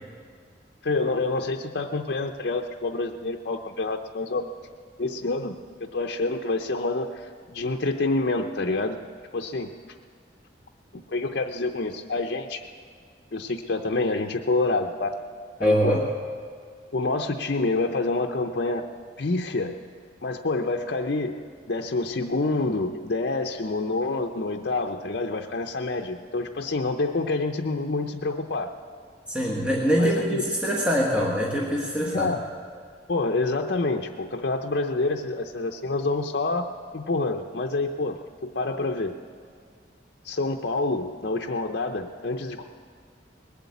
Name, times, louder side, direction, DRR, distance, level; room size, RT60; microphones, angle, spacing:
voice 1, 0.8-4.5 5.0-9.0 9.3-9.7 10.9-12.6 13.3-15.1 15.6-16.0 16.9-18.9 19.2-19.8 20.2-21.4 21.7-28.7 30.0-30.4 32.0-32.4 33.1-36.7 36.9-39.1 40.2-42.6, left 3 dB, 60° left, 3 dB, 0.6 m, -27 dB
voice 2, 15.6-16.0 29.3-32.3, equal, 5° right, -3 dB, 1.4 m, -23 dB
20.0 x 8.2 x 8.3 m, 2.1 s
head